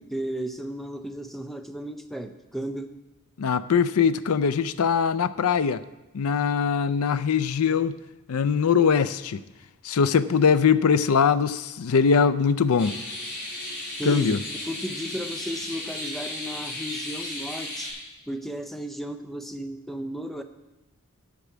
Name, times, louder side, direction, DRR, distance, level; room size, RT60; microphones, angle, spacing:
voice 1, 0.0-2.9 14.0-14.4 14.7-17.9 18.3-20.4, equal, ahead, 0.5 m, -34 dB
voice 2, 3.4-5.8 6.1-8.0 8.3-9.4 9.8-13.0 14.0-14.4, left 6 dB, 85° left, 0.4 m, -22 dB
sound 1, 12.8-17.9, left 1 dB, 50° left, 4.0 m, -35 dB
8.4 x 6.1 x 8.1 m
head